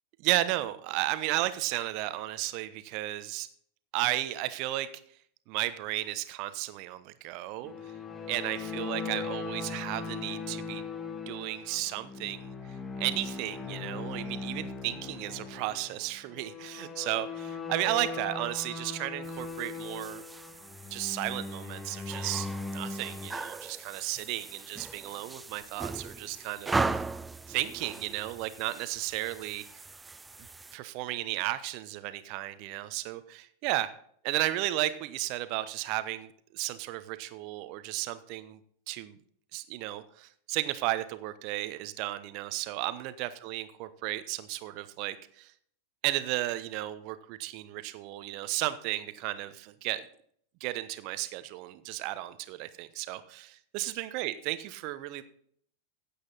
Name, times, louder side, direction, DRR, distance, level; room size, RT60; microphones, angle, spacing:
voice 1, 0.2-3.5 3.9-4.9 5.5-7.9 8.3-10.8 11.3-20.2 20.9-26.8 27.5-29.6 30.7-33.9 34.2-38.6 38.9-39.2 39.5-45.5 46.0-50.0 50.6-55.2, right 16 dB, 45° right, 13 dB, 1.0 m, -34 dB
sound 1, 7.6-23.3, left 4 dB, 20° left, 1.3 m, -39 dB
sound 2, 19.2-30.8, right 3 dB, 10° right, 0.4 m, -38 dB
16.0 x 8.5 x 4.2 m, 0.62 s
figure-of-eight pair, 90°, 0 cm